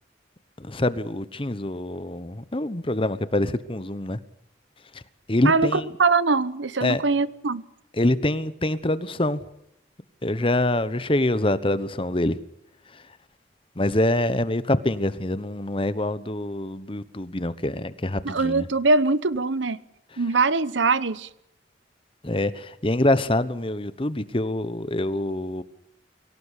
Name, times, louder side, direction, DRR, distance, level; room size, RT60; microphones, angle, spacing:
voice 1, 0.6-4.2 4.9-5.0 5.3-5.9 6.8-7.0 7.9-9.4 10.2-12.4 12.9-13.0 13.8-18.7 22.2-25.6, left 1 dB, 30° left, 1.0 m, -25 dB
voice 2, 5.4-7.7 18.2-19.8 20.2-21.3, right 3 dB, 80° right, 1.0 m, -22 dB
24.0 x 17.5 x 8.4 m
head